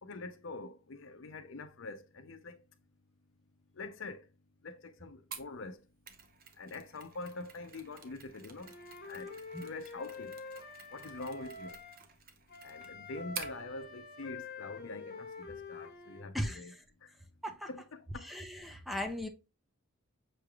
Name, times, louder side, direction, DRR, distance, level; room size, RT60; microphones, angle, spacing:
voice 1, 0.0-2.6 3.7-4.3 4.6-5.9 6.6-8.8 9.0-10.4 10.9-11.8 12.6-16.7 17.0-17.1 17.5-18.4, left 3 dB, 65° left, 0.6 m, -45 dB
Mechanisms, 5.3-13.6, right 6 dB, 45° right, 0.8 m, -50 dB
Wind instrument woodwind instrument, 8.6-12.0 12.5-16.3, left 3 dB, 50° left, 1.1 m, -46 dB
voice 2, 18.3-19.3, equal, ahead, 0.7 m, -37 dB
6.7 x 3.3 x 2.3 m
head